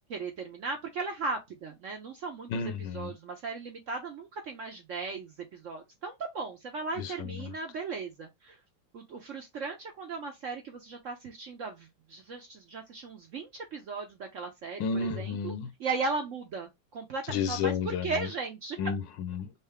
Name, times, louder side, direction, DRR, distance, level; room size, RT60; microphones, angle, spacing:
voice 1, 0.1-2.5 2.9-8.6 8.9-15.5 15.8-18.8, right 4 dB, 60° right, 0.8 m, -37 dB
voice 2, 2.5-3.1 7.0-7.5 14.8-15.7 17.3-18.3 18.8-19.5, left 6 dB, 80° left, 1.4 m, -32 dB
5.5 x 2.0 x 3.5 m
omnidirectional pair, 2.0 m